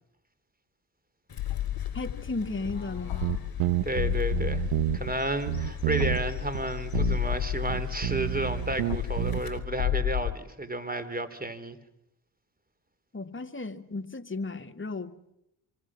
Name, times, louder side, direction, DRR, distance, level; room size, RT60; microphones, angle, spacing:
Fowl / Bird, 1.3-9.6, left 6 dB, 45° left, 3.6 m, -47 dB
sound 1, 1.4-10.4, left 13 dB, 70° left, 0.9 m, -32 dB
voice 1, 1.9-3.2 13.1-15.1, left 3 dB, 25° left, 7 dB, 2.2 m, -35 dB
sound 2, 3.2-5.1 5.5-6.3 6.5-6.6 6.9-7.4 7.7-9.6, right 16 dB, 85° right, 1.0 m, -29 dB
voice 2, 3.8-4.6 4.9-11.8, right 1 dB, 20° right, 13 dB, 3.3 m, -32 dB
25.5 x 25.0 x 6.2 m, 0.83 s
supercardioid pair, 55°, 49 cm